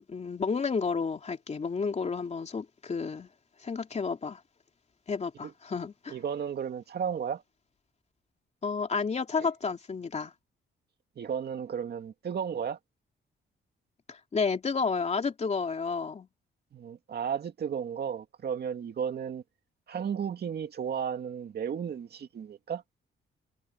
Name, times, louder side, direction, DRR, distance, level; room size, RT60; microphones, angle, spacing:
voice 1, 0.0-3.3 3.6-4.4 5.1-6.2 8.6-10.3 14.1-16.3, left 5 dB, 35° left, 3.3 m, -31 dB
voice 2, 6.1-7.4 9.4-9.5 11.2-12.8 16.7-19.4 19.9-22.8, right 7 dB, 50° right, 2.3 m, -34 dB
cardioid pair, 140°, 21 cm